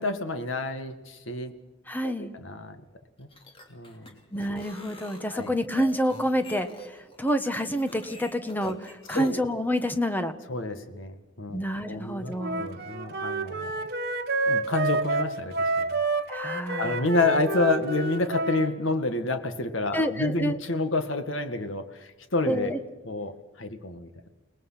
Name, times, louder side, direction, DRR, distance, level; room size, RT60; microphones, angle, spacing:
voice 1, 0.0-1.5 2.0-2.8 3.2-3.3 3.7-4.1 5.3-5.5 7.9-8.5 9.1-9.4 10.5-13.7 14.5-15.9 16.8-22.7 23.0-23.3 23.6-24.3, left 2 dB, 80° left, 8 dB, 2.0 m, -29 dB
voice 2, 1.9-2.3 4.3-10.3 11.5-12.6 16.3-17.0 19.9-20.6 22.5-22.8, equal, 10° left, 8 dB, 1.3 m, -28 dB
sound 1, 3.2-9.3, left 1 dB, 30° left, 2.9 m, -46 dB
Wind instrument woodwind instrument, 12.4-18.7, right 3 dB, 55° right, 1.7 m, -29 dB
30.0 x 19.0 x 5.9 m, 1.1 s
head